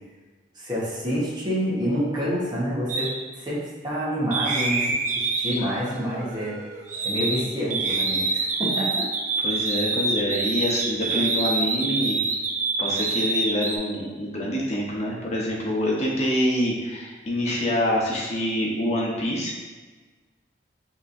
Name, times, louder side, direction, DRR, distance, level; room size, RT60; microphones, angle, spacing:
voice 1, 0.5-6.6 7.0-9.1, equal, 25° right, -7 dB, 1.1 m, -28 dB
sound 1, 2.9-3.1 4.3-7.4 7.7-13.8, right 3 dB, 40° right, 0.5 m, -26 dB
voice 2, 9.4-12.2 12.8-19.5, equal, 35° left, -4 dB, 0.9 m, -26 dB
6.0 x 3.0 x 2.6 m, 1.3 s
head